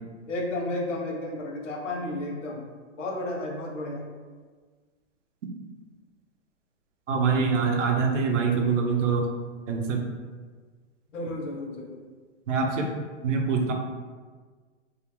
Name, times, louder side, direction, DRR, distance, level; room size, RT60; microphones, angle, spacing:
voice 1, 0.3-2.6 3.0-4.0 11.1-12.0, left 1 dB, 85° left, 0 dB, 0.8 m, -32 dB
voice 2, 7.1-9.3 9.7-10.0 12.5-12.9 13.2-13.7, right 5 dB, 85° right, 2 dB, 0.7 m, -24 dB
2.4 x 2.4 x 2.9 m, 1.5 s
hypercardioid pair, 165°, 36 cm